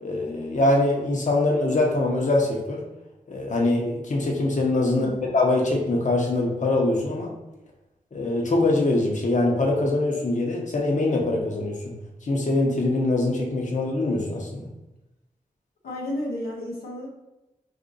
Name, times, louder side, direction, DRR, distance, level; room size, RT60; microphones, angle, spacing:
voice 1, 0.0-2.8 3.3-7.3 8.1-11.9 12.2-14.7, left 2 dB, 55° left, -1 dB, 0.9 m, -23 dB
voice 2, 4.9-5.3 15.8-17.1, left 1 dB, 85° left, -3 dB, 0.7 m, -32 dB
2.7 x 2.5 x 3.8 m, 0.97 s
cardioid pair, 45°, 15 cm